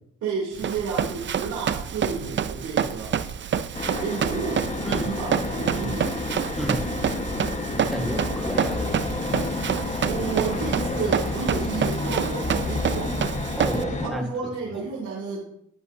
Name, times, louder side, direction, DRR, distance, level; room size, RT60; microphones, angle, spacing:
voice 1, 0.2-3.2 3.8-4.7 4.9-6.1 7.9-8.2 10.1-13.1 13.7-15.4, right 5 dB, 75° right, -5 dB, 3.1 m, -31 dB
Run, 0.6-13.8, right 8 dB, 40° right, 0.6 m, -28 dB
sound 1, 3.7-14.1, left 2 dB, 25° left, 1.3 m, -30 dB
sound 2, 4.3-12.0, left 3 dB, 75° left, 3.5 m, -47 dB
voice 2, 4.8-5.2 5.7-5.9 6.6-6.9 7.9-8.9 13.5-14.8, equal, ahead, 2 dB, 1.5 m, -32 dB
11.5 x 11.0 x 2.7 m, 0.71 s
cardioid pair, 90°, 30 cm